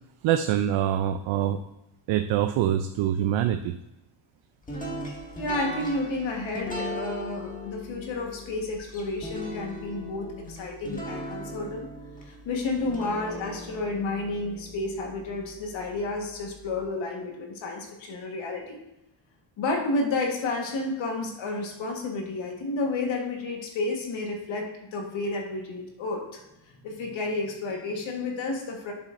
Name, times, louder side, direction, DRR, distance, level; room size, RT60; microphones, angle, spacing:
voice 1, 0.2-1.6 2.1-3.8, right 11 dB, 70° right, 8 dB, 0.5 m, -24 dB
sound 1, 4.7-15.7, left 1 dB, 15° left, 1.7 m, -38 dB
voice 2, 5.4-11.9 12.2-18.8 19.6-26.4 26.7-28.9, left 2 dB, 70° left, 2 dB, 1.4 m, -31 dB
7.3 x 6.6 x 2.5 m, 0.90 s
cardioid pair, 85°, 48 cm